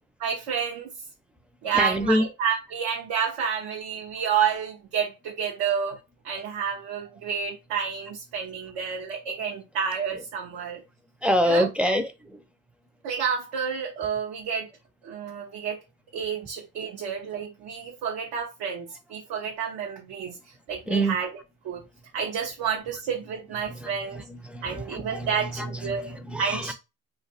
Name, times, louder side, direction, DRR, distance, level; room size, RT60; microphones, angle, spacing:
voice 1, 0.2-0.9 1.6-6.0 6.2-10.8 11.4-12.0 13.0-14.7 15.0-15.8 16.1-21.3 21.6-21.8 22.1-24.2 24.6-26.7, right 7 dB, 85° right, 0.8 m, -30 dB
voice 2, 1.7-2.2 11.2-12.4 20.9-21.2 23.7-26.7, equal, 5° right, 0.4 m, -26 dB
2.5 x 2.5 x 4.1 m
cardioid pair, 90°, 39 cm